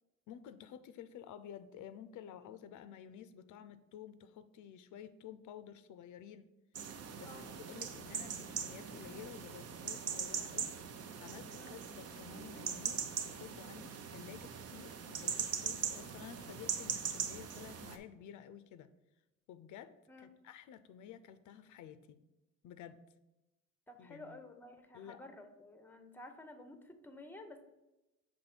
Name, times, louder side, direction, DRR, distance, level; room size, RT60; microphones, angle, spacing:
voice 1, 0.3-6.5 7.2-18.9 19.5-22.2 22.6-23.1 24.0-24.4 24.9-25.2, left 9 dB, 80° left, 12 dB, 0.5 m, -52 dB
sound 1, 6.8-18.0, right 7 dB, 55° right, 0.7 m, -41 dB
voice 2, 23.9-27.6, left 2 dB, 5° left, 8 dB, 0.6 m, -52 dB
7.0 x 3.1 x 5.9 m, 0.98 s
cardioid pair, 125°, 30 cm